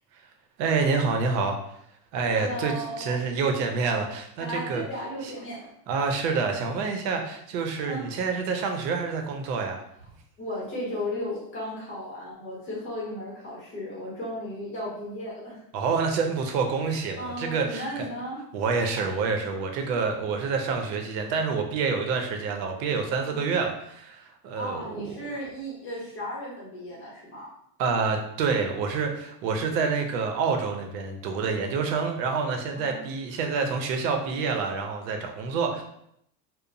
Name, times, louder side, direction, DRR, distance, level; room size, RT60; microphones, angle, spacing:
voice 1, 0.6-1.6 2.1-4.8 5.2-5.3 5.9-9.8 15.7-17.9 18.5-25.1 27.8-35.8, right 4 dB, 85° right, 4 dB, 0.7 m, -27 dB
voice 2, 2.3-3.2 4.4-5.6 7.8-8.0 10.4-15.6 17.2-18.4 23.3-23.5 24.5-27.5 32.8-33.0, equal, 25° left, -5 dB, 0.7 m, -35 dB
2.9 x 2.0 x 2.5 m, 0.74 s
supercardioid pair, 170°, 48 cm